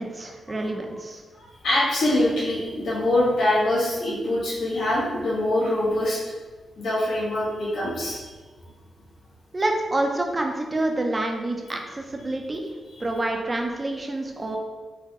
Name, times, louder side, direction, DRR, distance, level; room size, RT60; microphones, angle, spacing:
voice 1, 0.0-1.2 9.5-12.6 13.0-14.6, right 2 dB, 30° right, 2 dB, 0.6 m, -27 dB
voice 2, 1.4-6.2 6.8-8.3, left 1 dB, 75° left, -9 dB, 1.3 m, -24 dB
4.6 x 2.2 x 2.9 m, 1.4 s
cardioid pair, 65°, 0 cm